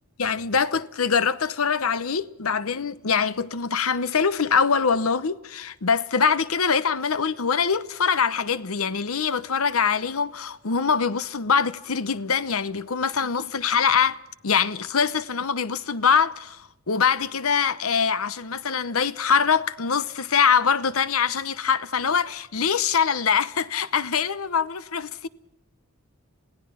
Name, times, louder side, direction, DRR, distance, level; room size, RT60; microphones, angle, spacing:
voice 1, 0.2-16.6 16.9-25.3, left 6 dB, 80° left, 0.9 m, -23 dB
28.0 x 17.5 x 5.7 m
head